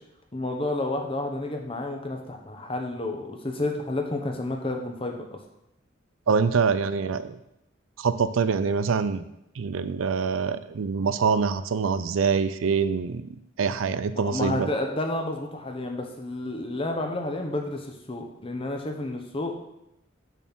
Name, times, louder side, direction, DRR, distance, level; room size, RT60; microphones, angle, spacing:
voice 1, 0.3-5.4 14.1-19.6, left 2 dB, 30° left, 3 dB, 0.9 m, -30 dB
voice 2, 6.3-7.4 8.0-9.2 9.6-14.7, right 5 dB, 90° right, 13 dB, 0.4 m, -25 dB
6.9 x 4.2 x 6.1 m, 0.85 s
head